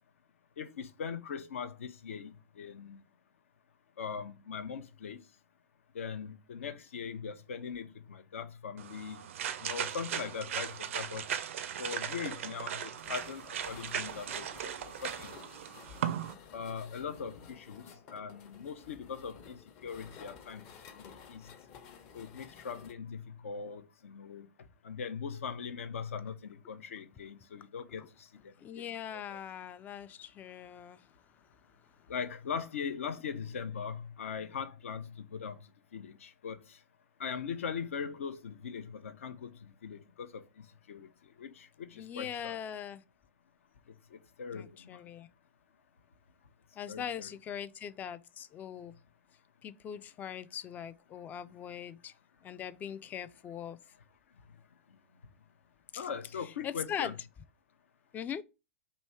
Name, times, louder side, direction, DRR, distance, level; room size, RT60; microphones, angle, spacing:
voice 1, 0.6-3.0 4.0-5.2 5.9-9.2 9.6-11.3 11.8-14.7 15.0-15.3 16.5-17.8 18.1-20.7 21.0-21.5 22.1-24.5 24.8-29.4 32.1-36.8 37.2-41.1 41.4-42.6 44.1-45.0 46.9-47.3 56.0-57.1, left 6 dB, 70° left, 0.6 m, -41 dB
sound 1, 8.8-16.3, right 9 dB, 65° right, 0.4 m, -38 dB
sound 2, 13.0-22.9, left 6 dB, 40° left, 0.8 m, -53 dB
voice 2, 28.6-31.0 42.0-43.0 44.5-45.3 46.8-48.9 49.6-52.1 52.4-53.8 55.9-56.0 56.6-57.1 58.1-58.4, left 9 dB, 25° left, 0.3 m, -41 dB
3.1 x 2.7 x 4.4 m
hypercardioid pair, 105°, 8 cm